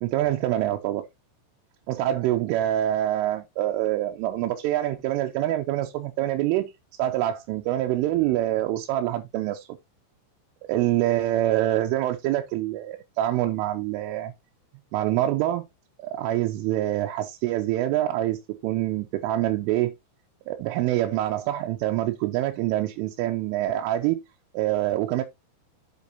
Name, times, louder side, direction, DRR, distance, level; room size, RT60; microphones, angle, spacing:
voice 1, 0.0-1.0 1.9-6.7 7.0-9.7 10.6-14.3 14.9-15.7 16.0-19.9 20.5-24.2 24.5-25.2, right 14 dB, 90° right, 3.3 m, -25 dB
8.3 x 7.4 x 2.9 m
omnidirectional pair, 5.6 m